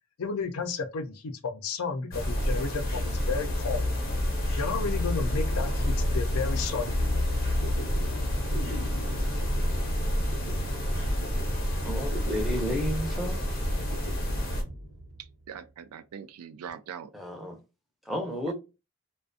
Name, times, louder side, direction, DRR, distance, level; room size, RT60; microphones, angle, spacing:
voice 1, 0.2-3.9 4.5-6.9, left 4 dB, 90° left, 0.5 m, -32 dB
sound 1, 2.1-14.6, left 1 dB, 45° left, 0.6 m, -28 dB
sound 2, 5.2-15.7, right 1 dB, 70° right, 0.8 m, -42 dB
voice 2, 11.8-13.5 17.1-17.6 18.1-18.5, left 1 dB, ahead, 0.5 m, -32 dB
voice 3, 15.2-17.1 18.5-18.6, right 8 dB, 90° right, 0.3 m, -42 dB
2.4 x 2.1 x 2.5 m
head